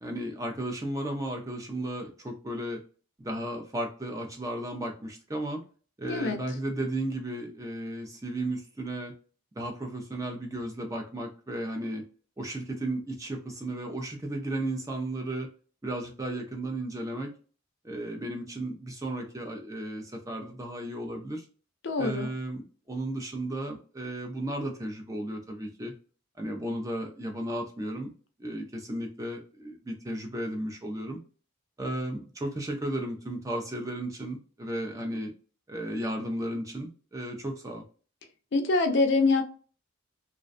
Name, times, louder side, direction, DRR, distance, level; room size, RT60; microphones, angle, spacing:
voice 1, 0.0-2.8 3.2-5.6 6.0-9.1 9.5-12.0 12.4-15.5 15.8-17.3 17.8-21.4 22.0-25.9 26.4-28.1 28.4-31.2 31.8-35.3 35.7-37.8, right 1 dB, 15° right, 2 dB, 0.4 m, -34 dB
voice 2, 21.8-22.3 38.5-39.4, left 3 dB, 55° left, 7 dB, 0.4 m, -24 dB
2.5 x 2.1 x 2.4 m, 0.39 s
head